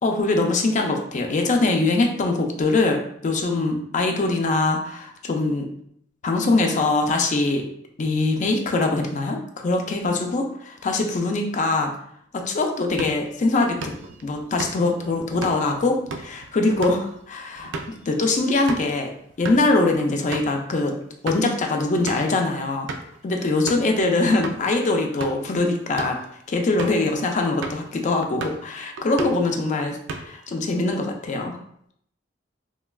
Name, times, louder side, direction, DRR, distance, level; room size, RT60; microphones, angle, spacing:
voice 1, 0.0-5.7 6.2-7.6 8.0-11.9 12.3-13.9 14.2-19.1 19.4-20.9 21.2-22.9 23.2-26.2 26.5-31.6, left 2 dB, 40° left, 3 dB, 0.4 m, -23 dB
sound 1, 12.9-18.9 19.3-19.6 20.0-20.1 20.3-20.5 21.0-21.6 22.1-22.4 22.9-23.2 23.7-23.9 24.4-24.6 25.1-25.5 25.8-26.2 26.8-27.1 27.6-27.9 28.2-28.7 29.0-29.5 29.9-30.5, right 3 dB, 65° right, 0.3 m, -35 dB
3.1 x 2.2 x 2.2 m, 0.69 s
head